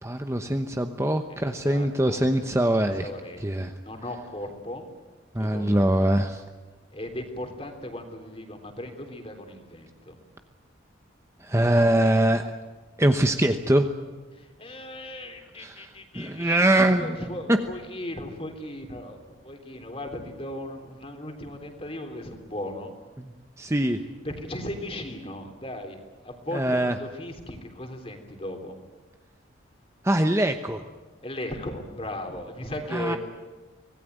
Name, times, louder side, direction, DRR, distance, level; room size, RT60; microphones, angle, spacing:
voice 1, 0.0-3.1 3.4-3.7 5.3-6.4 11.4-12.5 13.0-13.9 15.6-15.9 16.1-17.2 17.5-17.6 23.2-24.0 26.5-26.9 30.0-30.8 32.9-33.2, right 1 dB, 15° right, 6 dB, 0.9 m, -23 dB
voice 2, 1.3-2.5 2.7-3.4 3.8-4.9 5.4-6.1 6.9-10.2 14.3-22.9 24.2-26.0 26.2-28.7 31.2-33.2, left 1 dB, 30° left, 5 dB, 3.4 m, -37 dB
25.0 x 18.5 x 9.3 m, 1.3 s
head